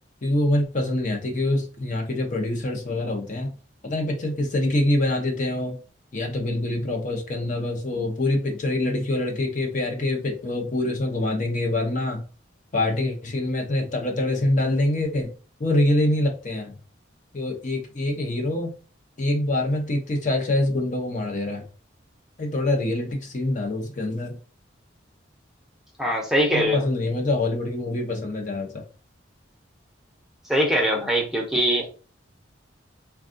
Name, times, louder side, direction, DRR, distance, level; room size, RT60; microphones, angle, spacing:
voice 1, 0.2-3.5 3.8-5.8 6.1-12.2 12.7-15.3 15.6-16.7 17.3-18.7 19.2-21.6 22.4-24.4 26.5-28.8, left 1 dB, 40° left, 3 dB, 0.6 m, -25 dB
voice 2, 26.0-26.8 30.5-31.9, equal, ahead, -1 dB, 0.5 m, -22 dB
3.5 x 2.3 x 2.5 m, 0.36 s
head